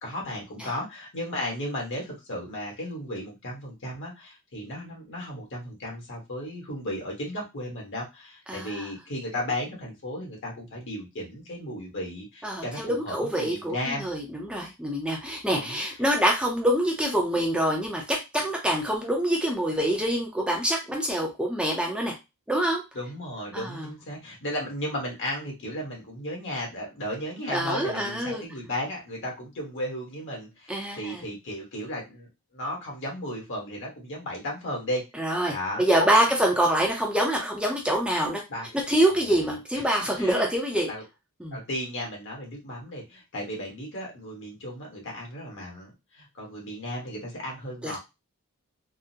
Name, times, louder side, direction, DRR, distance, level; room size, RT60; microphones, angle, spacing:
voice 1, 0.0-14.1 15.5-15.8 22.9-36.2 36.8-36.9 38.5-38.7 39.7-39.8 40.1-40.5 40.9-41.0 41.5-48.0, left 1 dB, 55° left, -1 dB, 1.3 m, -35 dB
voice 2, 8.5-8.8 12.4-22.1 22.5-22.8 23.5-23.9 27.5-28.5 30.7-31.2 35.2-38.4 38.9-40.9 41.4-41.6 47.8-48.0, right 1 dB, 5° right, 0 dB, 0.6 m, -25 dB
3.6 x 2.1 x 2.7 m, 0.24 s
head